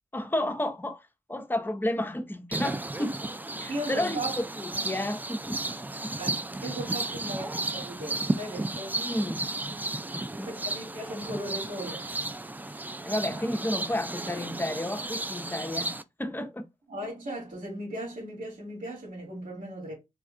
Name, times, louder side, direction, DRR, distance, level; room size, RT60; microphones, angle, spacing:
voice 1, 0.1-1.0 1.3-3.2 3.6-5.6 6.0-6.1 9.0-9.4 10.1-10.5 13.1-15.9 16.2-16.6, left 1 dB, 15° left, 0.7 m, -31 dB
sound 1, 2.5-16.0, right 2 dB, 15° right, 0.3 m, -34 dB
voice 2, 3.7-4.4 6.2-9.1 10.4-12.1 16.9-19.9, right 1 dB, 80° right, 2.8 m, -37 dB
4.3 x 2.3 x 3.6 m
cardioid pair, 65°, 14 cm